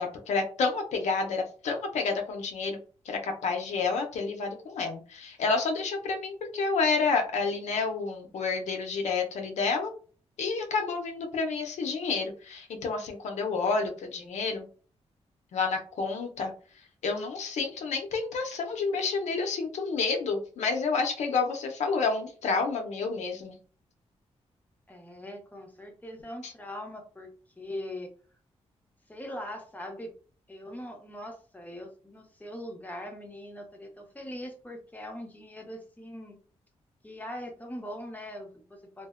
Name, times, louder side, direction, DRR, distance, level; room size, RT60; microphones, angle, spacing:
voice 1, 0.0-2.8 3.0-9.9 10.4-14.7 15.5-23.6 26.4-26.5, left 4 dB, 80° left, 3 dB, 0.5 m, -29 dB
voice 2, 24.9-28.1 29.1-30.1 30.5-36.4 37.0-39.1, left 1 dB, 15° left, 2 dB, 0.7 m, -41 dB
2.6 x 2.1 x 2.4 m, 0.40 s
cardioid pair, 80°, 12 cm